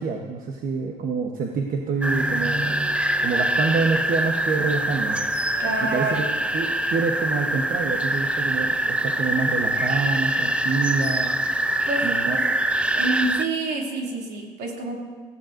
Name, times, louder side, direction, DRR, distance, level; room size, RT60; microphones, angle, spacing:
voice 1, 0.0-2.8 3.2-5.3 5.8-6.3 6.5-11.4 12.0-12.4, right 4 dB, 55° right, 2 dB, 1.0 m, -27 dB
sound 1, 2.0-13.4, right 1 dB, 5° right, 0.5 m, -24 dB
voice 2, 5.6-6.2 11.9-12.5 12.9-15.0, right 3 dB, 75° right, -1 dB, 2.7 m, -28 dB
18.5 x 14.5 x 2.6 m, 1.5 s
cardioid pair, 110°, 17 cm